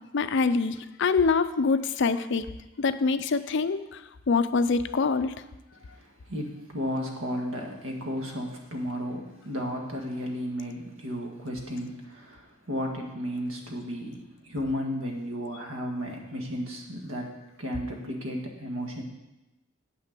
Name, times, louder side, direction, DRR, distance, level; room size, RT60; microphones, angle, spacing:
voice 1, 0.1-2.5 2.8-4.0 4.3-5.4, left 4 dB, 60° left, 12 dB, 0.5 m, -25 dB
voice 2, 5.8-19.0, equal, 85° right, 1 dB, 1.8 m, -34 dB
8.4 x 6.1 x 7.5 m, 1.0 s
head